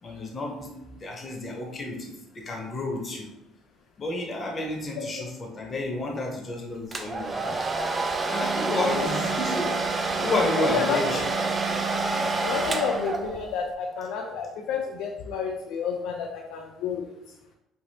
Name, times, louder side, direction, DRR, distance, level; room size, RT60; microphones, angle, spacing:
voice 1, 0.0-3.3 4.0-7.7 8.2-11.2, left 2 dB, 35° left, 1 dB, 0.9 m, -31 dB
Domestic sounds home sounds, 6.9-13.6, right 3 dB, 30° right, 0.4 m, -28 dB
Wind instrument woodwind instrument, 8.3-13.4, right 8 dB, 65° right, 0.9 m, -37 dB
voice 2, 8.7-9.1 10.6-11.0 12.4-17.1, left 6 dB, 75° left, 1 dB, 0.3 m, -30 dB
3.3 x 2.6 x 2.7 m, 0.89 s
supercardioid pair, 70°, 0 cm